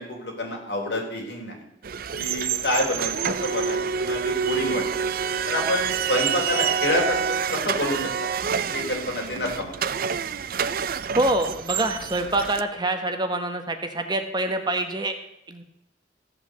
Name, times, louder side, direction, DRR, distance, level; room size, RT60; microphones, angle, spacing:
voice 1, 0.0-1.6 2.2-4.8 5.5-8.3 8.7-9.8, left 1 dB, 65° left, 0 dB, 3.8 m, -28 dB
sound 1, 1.8-12.6, right 7 dB, 55° right, 0.5 m, -27 dB
voice 2, 11.1-15.1 15.5-15.6, right 2 dB, 25° right, 6 dB, 1.1 m, -25 dB
15.0 x 5.8 x 8.1 m, 0.83 s
head